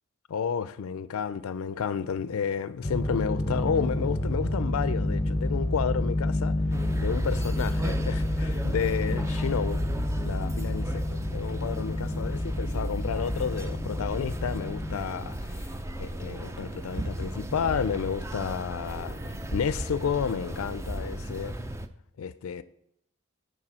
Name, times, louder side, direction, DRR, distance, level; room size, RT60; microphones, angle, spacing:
voice 1, 0.3-6.6 7.0-9.8 10.2-21.6 22.2-22.6, left 7 dB, 90° left, 0.4 m, -31 dB
sound 1, 2.8-15.0, left 1 dB, 20° left, 0.7 m, -29 dB
sound 2, 6.7-21.9, right 1 dB, 15° right, 0.4 m, -36 dB
8.7 x 4.7 x 6.1 m
head